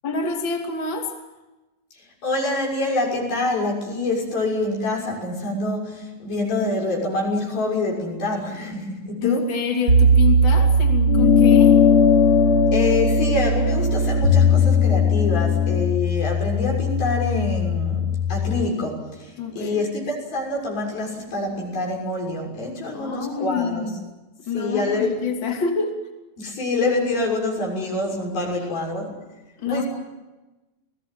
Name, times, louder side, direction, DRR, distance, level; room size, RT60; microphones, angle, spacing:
voice 1, 0.0-1.1 9.2-11.8 19.4-19.8 22.9-24.0 24.5-26.0 28.6-28.7 29.6-29.8, left 5 dB, 35° left, 2 dB, 3.4 m, -26 dB
voice 2, 2.2-9.4 12.7-23.9 24.5-25.1 26.4-29.2 29.7-29.8, left 2 dB, 85° left, 0 dB, 8.4 m, -26 dB
sound 1, 9.9-18.6, equal, 40° right, 2.5 m, -20 dB
sound 2, 11.1-15.9, left 10 dB, 50° left, 4.2 m, -19 dB
30.0 x 19.0 x 7.9 m, 1.1 s
omnidirectional pair, 4.1 m